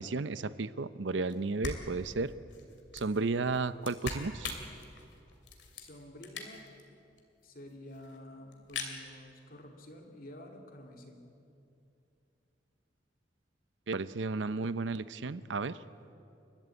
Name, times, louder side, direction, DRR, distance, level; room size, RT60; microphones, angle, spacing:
voice 1, 0.0-2.3 2.9-4.6 13.9-15.8, right 3 dB, 85° right, 15 dB, 0.7 m, -33 dB
sound 1, 1.3-1.4 1.6-6.8 7.2-7.3 7.4-7.5 7.7-8.2 8.5-9.0, left 4 dB, 70° left, 2.8 m, -42 dB
voice 2, 5.8-6.7 7.4-11.3, left 1 dB, 50° left, 3 dB, 2.9 m, -50 dB
30.0 x 13.0 x 8.4 m, 2.6 s
head